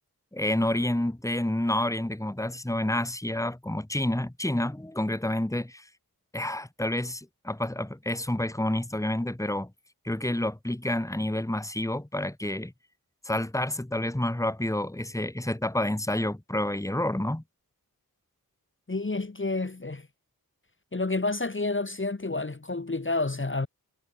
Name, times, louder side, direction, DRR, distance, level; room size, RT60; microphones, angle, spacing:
voice 1, 0.3-5.8 6.3-9.7 10.0-12.7 13.2-17.4, left 1 dB, 10° left, 2.2 m, -29 dB
voice 2, 18.9-20.1 20.9-23.7, left 3 dB, 35° left, 2.0 m, -29 dB
wide cardioid pair, 85°, 36 cm